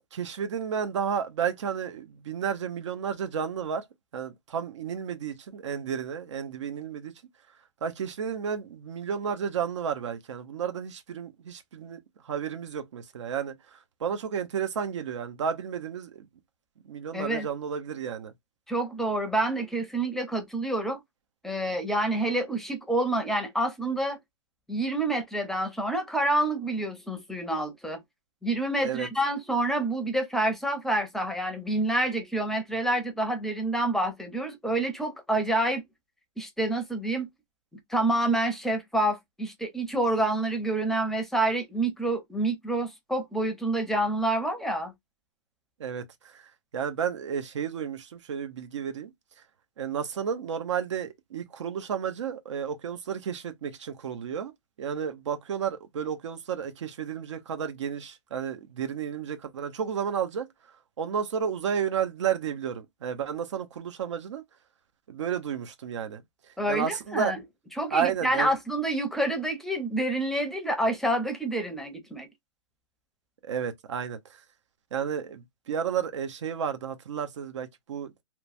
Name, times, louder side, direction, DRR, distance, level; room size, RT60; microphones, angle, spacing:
voice 1, 0.0-3.8 4.1-7.1 7.8-13.5 14.0-16.2 16.9-18.3 28.8-29.1 45.8-49.1 49.8-54.5 54.8-60.5 61.0-64.4 65.1-66.2 66.7-67.3 67.9-68.5 73.4-74.2 74.9-78.1, right 7 dB, 75° right, 0.7 m, -32 dB
voice 2, 17.1-17.5 18.7-21.0 21.4-24.2 24.7-28.0 28.4-35.8 36.4-37.3 37.9-44.9 66.6-67.4 67.8-72.3, right 1 dB, ahead, 0.5 m, -28 dB
3.0 x 2.2 x 2.5 m
hypercardioid pair, 135°, 15 cm